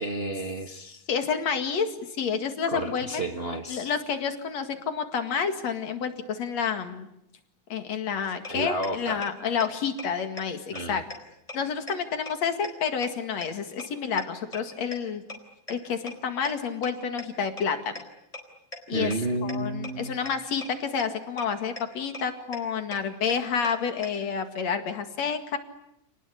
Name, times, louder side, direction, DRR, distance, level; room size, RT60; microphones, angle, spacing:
voice 1, 0.0-1.0 2.7-3.9 8.5-9.2 10.7-11.0 18.9-20.2, right 1 dB, 40° right, 5 dB, 0.8 m, -31 dB
voice 2, 1.1-3.2 3.7-7.1 7.7-11.0 11.5-15.2 15.7-18.0 18.9-19.1 19.4-25.6, left 6 dB, 60° left, 7 dB, 3.2 m, -29 dB
sound 1, 8.4-8.5 8.8-8.9 9.2-9.3 9.6-9.7 10.0-10.1 10.4-10.5 10.7-10.8 11.1-11.2 11.5-11.6 11.9-12.0 12.3-12.4 12.6-12.7 13.0-13.1 13.4-13.5 13.8-13.9 14.2-14.3 14.5-14.6 14.9-15.0 15.3-15.4 15.7-15.8 16.1-16.2 16.4-16.5 16.8-16.9 17.2-17.3 17.6-17.7 17.9-18.0 18.3-18.4 18.7-18.8 19.1-19.2 19.5-19.6 19.8-19.9 20.2-20.3 20.6-20.7 21.0-21.1 21.4-21.5 21.8-21.9 22.1-22.2 22.5-22.6 22.9-23.0 23.3-23.4 23.6-23.7 24.0-24.1, left 2 dB, 10° left, 4.3 m, -37 dB
29.0 x 20.0 x 10.0 m, 0.82 s
omnidirectional pair, 3.5 m